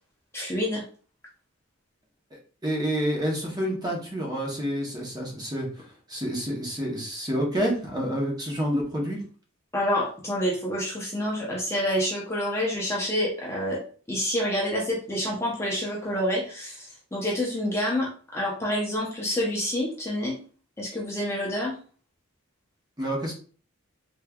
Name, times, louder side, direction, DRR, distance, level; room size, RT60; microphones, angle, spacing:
voice 1, 0.3-0.8 9.7-13.8 14.1-20.4 20.8-21.8, equal, 10° left, -4 dB, 0.6 m, -28 dB
voice 2, 2.6-9.2 23.0-23.3, equal, 20° right, -1 dB, 0.8 m, -28 dB
3.4 x 3.1 x 2.3 m, 0.42 s
head